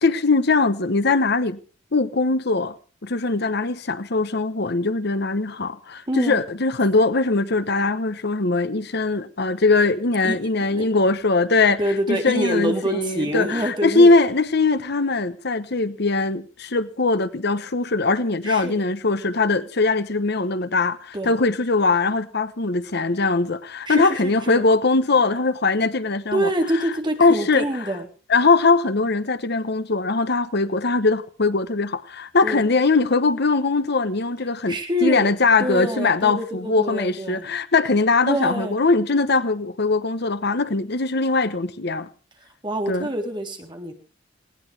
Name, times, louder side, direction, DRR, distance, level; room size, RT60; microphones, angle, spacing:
voice 1, 0.0-1.6 1.9-2.7 3.0-11.8 12.1-26.5 27.2-28.0 28.3-34.7 35.0-42.1 42.9-43.1, left 3 dB, 60° left, 1.1 m, -21 dB
voice 2, 6.1-6.4 10.2-10.4 10.7-10.9 11.8-14.1 18.4-18.8 21.1-21.4 23.9-24.6 26.3-28.1 32.4-32.6 34.7-35.3 35.6-37.4 38.3-38.8 42.6-43.9, equal, 25° right, 3.8 m, -26 dB
20.0 x 18.5 x 3.5 m
head